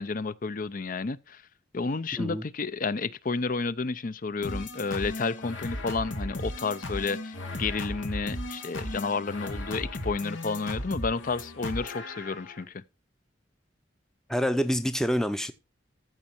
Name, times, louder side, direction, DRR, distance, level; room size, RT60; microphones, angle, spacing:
voice 1, 0.0-1.4 1.7-12.8, left 4 dB, 45° left, 0.6 m, -31 dB
sound 1, 4.4-12.6, left 1 dB, 85° left, 2.1 m, -36 dB
voice 2, 14.3-15.5, equal, 5° left, 0.6 m, -26 dB
14.0 x 6.4 x 4.4 m
head